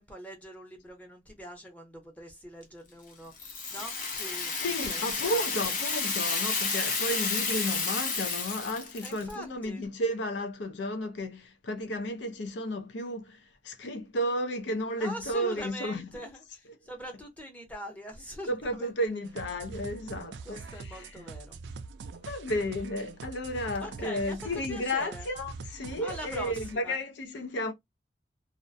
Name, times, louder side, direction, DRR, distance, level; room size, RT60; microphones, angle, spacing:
voice 1, 0.0-5.7 9.0-9.9 15.0-19.0 20.4-21.6 23.8-25.3 26.0-26.6 26.8-27.0, equal, 10° left, 0.7 m, -43 dB
Rattle (instrument), 3.4-9.3, left 4 dB, 50° left, 0.7 m, -31 dB
voice 2, 4.6-16.2 18.5-21.1 22.2-27.7, equal, 85° left, 0.5 m, -33 dB
sound 1, 19.2-26.8, right 4 dB, 85° right, 0.3 m, -43 dB
2.4 x 2.1 x 2.5 m
head